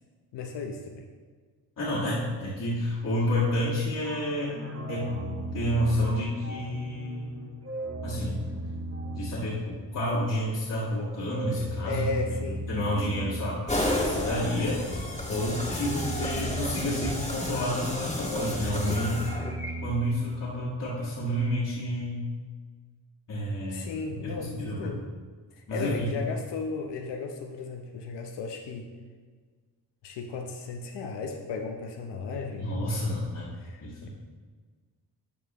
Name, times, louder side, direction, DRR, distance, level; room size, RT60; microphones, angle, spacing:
voice 1, 0.3-1.0 11.8-12.7 14.6-14.7 15.7-16.0 23.7-25.1 25.7-28.9 30.0-34.1, left 4 dB, 70° left, 3 dB, 0.9 m, -35 dB
voice 2, 1.8-4.6 4.9-7.4 8.0-8.4 9.2-12.0 12.5-14.8 15.3-19.2 19.8-22.3 23.3-23.9 24.2-25.0 25.7-26.1 32.6-33.5 33.8-34.1, equal, 45° left, -8 dB, 2.1 m, -30 dB
sound 1, 3.9-10.3 11.3-14.3 15.3-17.4 18.2-20.7, right 1 dB, 35° right, 1.5 m, -37 dB
sound 2, 13.7-19.7, left 1 dB, 15° left, 2.0 m, -32 dB
12.5 x 4.5 x 3.0 m, 1.5 s
supercardioid pair, 65°, 43 cm